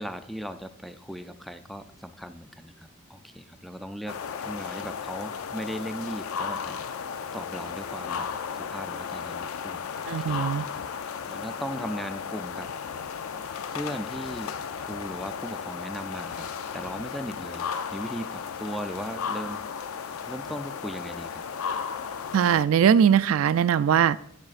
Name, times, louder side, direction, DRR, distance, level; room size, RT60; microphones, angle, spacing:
voice 1, 0.0-6.8 7.3-8.3 8.6-10.5 11.3-12.7 13.7-16.5 16.7-19.7 20.3-21.4, equal, ahead, 9 dB, 0.4 m, -38 dB
sound 1, 4.1-22.7, left 6 dB, 80° left, 0.4 m, -35 dB
voice 2, 10.1-10.7 22.3-24.2, right 8 dB, 75° right, 16 dB, 0.3 m, -20 dB
12.5 x 8.3 x 2.4 m, 0.71 s
head